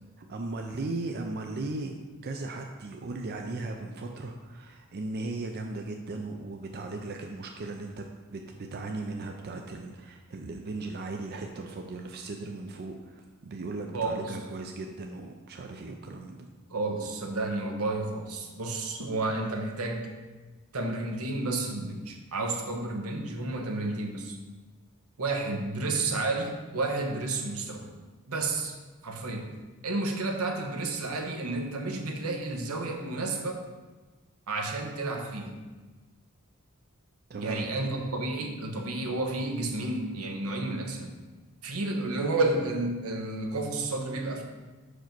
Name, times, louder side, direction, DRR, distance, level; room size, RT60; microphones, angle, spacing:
voice 1, 0.2-1.9 2.2-8.0 8.3-16.5 37.3-37.7, right 2 dB, 45° right, 3 dB, 0.5 m, -37 dB
voice 2, 13.9-14.4 16.7-20.1 20.7-24.4 25.2-27.9 28.3-28.7 29.0-29.5 29.8-33.6 34.5-35.6 37.4-41.2 41.6-44.4, right 2 dB, 85° right, 2 dB, 1.0 m, -31 dB
5.2 x 4.9 x 5.9 m, 1.3 s
head